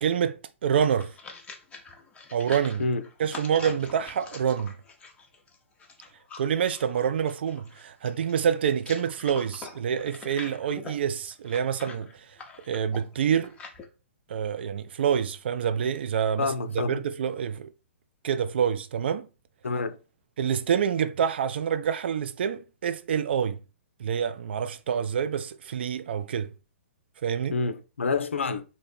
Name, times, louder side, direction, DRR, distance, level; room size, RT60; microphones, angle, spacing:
voice 1, 0.0-1.1 2.3-2.8 3.2-4.7 6.4-12.1 12.7-13.5 14.3-16.5 16.7-17.7 18.2-19.3 20.4-23.6 24.0-26.5 27.2-27.5, right 8 dB, 55° right, 0.4 m, -27 dB
sound 1, 0.7-13.8, left 4 dB, 15° left, 0.8 m, -45 dB
voice 2, 16.4-17.0 19.6-20.0 27.5-28.6, left 4 dB, 70° left, 0.5 m, -28 dB
3.0 x 2.8 x 4.3 m
figure-of-eight pair, 115°, 7 cm